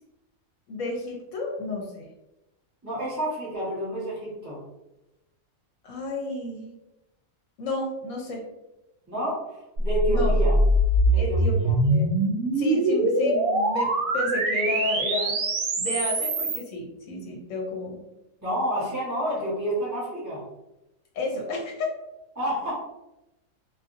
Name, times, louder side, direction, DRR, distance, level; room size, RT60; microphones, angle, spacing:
voice 1, 0.7-2.1 5.8-6.7 7.6-8.4 10.1-10.3 11.2-11.6 11.8-12.0 12.5-15.4 15.8-18.0 21.1-21.9, left 2 dB, 65° left, 0 dB, 0.9 m, -31 dB
voice 2, 2.8-4.6 9.1-10.6 11.1-11.7 18.4-20.4 22.3-22.7, right 1 dB, 15° right, -9 dB, 0.9 m, -29 dB
sound 1, 9.8-16.6, right 1 dB, 75° right, 1.0 m, -23 dB
2.7 x 2.5 x 2.5 m, 0.94 s
omnidirectional pair, 1.5 m